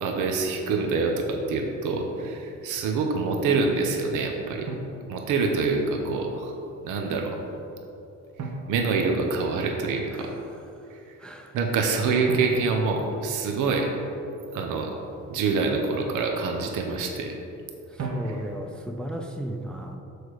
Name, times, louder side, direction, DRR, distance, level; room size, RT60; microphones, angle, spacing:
voice 1, 0.0-4.7 5.1-6.5 6.8-7.4 8.7-10.4 10.9-11.0 11.5-13.9 14.5-14.9 15.3-17.3 18.2-18.4, right 4 dB, 85° right, 2 dB, 0.8 m, -26 dB
Drum, 2.2-2.5 4.7-5.8 8.4-9.8 12.3-14.0 18.0-18.9, right 3 dB, 60° right, 1.1 m, -37 dB
voice 2, 11.2-11.5 18.0-20.0, right 1 dB, 5° left, 3 dB, 0.5 m, -34 dB
6.4 x 4.6 x 4.7 m, 2.8 s
cardioid pair, 90°, 30 cm